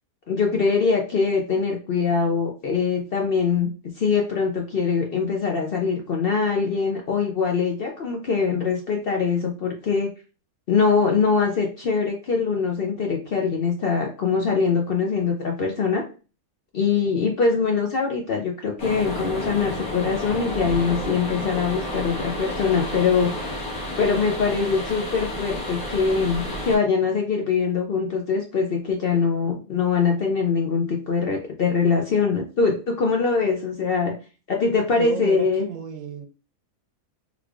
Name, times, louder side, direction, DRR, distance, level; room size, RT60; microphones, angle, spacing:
voice 1, 0.3-10.1 10.7-16.0 16.7-23.3 24.0-34.1 34.5-35.7, left 5 dB, 60° left, 1 dB, 0.6 m, -23 dB
sound 1, 18.8-26.8, left 1 dB, 80° left, 1.5 m, -31 dB
voice 2, 34.9-36.3, right 8 dB, 70° right, 7 dB, 0.9 m, -33 dB
3.5 x 3.1 x 2.4 m, 0.34 s
omnidirectional pair, 1.5 m